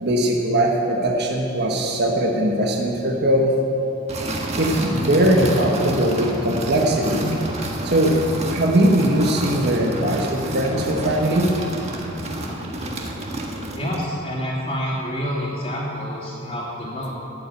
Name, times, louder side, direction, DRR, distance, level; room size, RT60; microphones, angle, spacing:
voice 1, 0.0-3.5 4.6-7.4 7.8-8.1 8.5-11.5, right 1 dB, 55° right, 0 dB, 1.4 m, -20 dB
sound 1, 4.1-14.1, right 1 dB, 35° right, 1.5 m, -29 dB
voice 2, 13.7-17.1, equal, 30° left, -9 dB, 2.7 m, -28 dB
13.0 x 8.6 x 9.1 m, 2.9 s
head